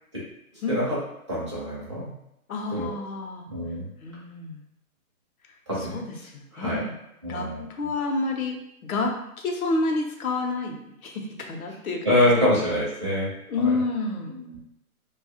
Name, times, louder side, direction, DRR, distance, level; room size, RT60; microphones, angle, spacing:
voice 1, 1.3-2.1 2.7-2.9 3.5-3.8 5.7-6.0 6.5-6.8 7.2-7.6 12.0-13.3 14.5-14.6, left 1 dB, 20° right, -9 dB, 0.5 m, -25 dB
voice 2, 2.5-3.5 4.0-4.6 5.8-7.0 7.3-12.2 12.4-12.6 13.5-14.4, left 3 dB, 70° left, 2 dB, 0.8 m, -29 dB
2.7 x 2.3 x 2.7 m, 0.79 s
hypercardioid pair, 175°, 44 cm